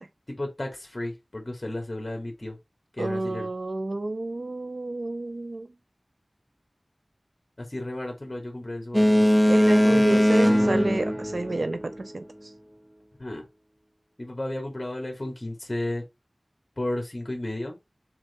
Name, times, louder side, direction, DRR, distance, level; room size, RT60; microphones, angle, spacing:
voice 1, 0.3-2.6 2.9-3.5 7.6-9.3 9.8-10.2 13.2-13.5 14.2-16.0 16.8-17.8, left 1 dB, 35° left, 2.2 m, -33 dB
voice 2, 3.0-5.7 9.5-12.5, right 2 dB, 70° right, 0.5 m, -29 dB
Boat Water vehicle, 8.9-12.1, equal, ahead, 0.6 m, -20 dB
6.2 x 4.1 x 4.3 m
wide cardioid pair, 55°, 0 cm